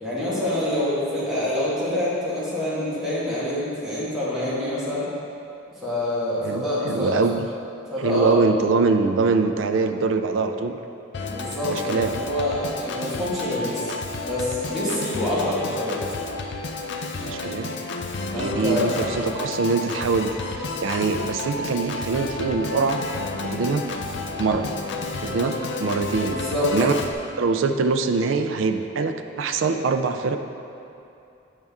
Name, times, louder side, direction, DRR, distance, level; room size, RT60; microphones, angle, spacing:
voice 1, 0.0-5.1 5.8-7.2 7.9-8.4 11.2-13.9 14.2-16.0 18.3-19.1 26.2-26.7, left 1 dB, ahead, -11 dB, 1.4 m, -26 dB
voice 2, 6.4-7.5 8.0-10.8 11.7-12.1 17.2-17.7 18.3-23.0 23.4-23.9 24.4-24.7 25.2-26.4 26.7-27.0 27.4-30.4, right 4 dB, 70° right, 7 dB, 0.4 m, -23 dB
Organ, 11.1-27.1, left 3 dB, 60° left, 0.5 m, -31 dB
7.5 x 5.4 x 3.6 m, 2.7 s
head